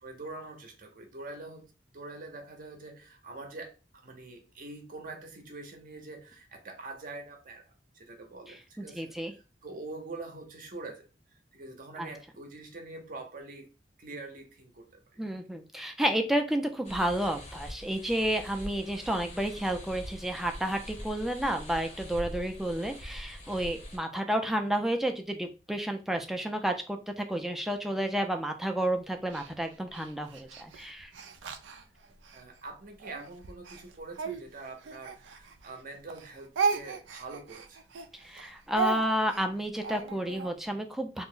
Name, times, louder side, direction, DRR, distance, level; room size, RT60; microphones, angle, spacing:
voice 1, 0.0-7.7 7.9-11.1 11.5-13.7 14.0-15.3 32.3-37.8, right 3 dB, 50° right, 0.7 m, -45 dB
voice 2, 8.8-9.3 12.0-12.1 15.2-31.1 38.2-41.2, right 1 dB, ahead, 0.3 m, -31 dB
sound 1, 16.8-24.0, left 1 dB, 40° left, 0.7 m, -43 dB
Speech, 29.3-32.4 33.0-35.8 36.1-40.5, right 5 dB, 85° right, 0.4 m, -35 dB
2.5 x 2.0 x 3.6 m
head